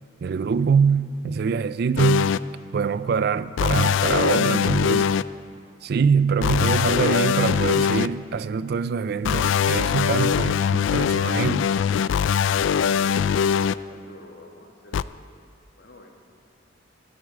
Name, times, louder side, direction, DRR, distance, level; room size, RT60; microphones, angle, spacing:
voice 1, 0.2-2.3 2.7-5.1 5.8-11.7, right 6 dB, 55° right, 0.4 m, -24 dB
sound 1, 2.0-2.4 3.6-5.2 6.4-8.1 9.2-13.7 14.9-15.0, left 7 dB, 70° left, 0.3 m, -22 dB
voice 2, 13.8-15.0 15.8-16.3, left 1 dB, 55° left, 1.8 m, -48 dB
12.5 x 8.4 x 8.7 m
head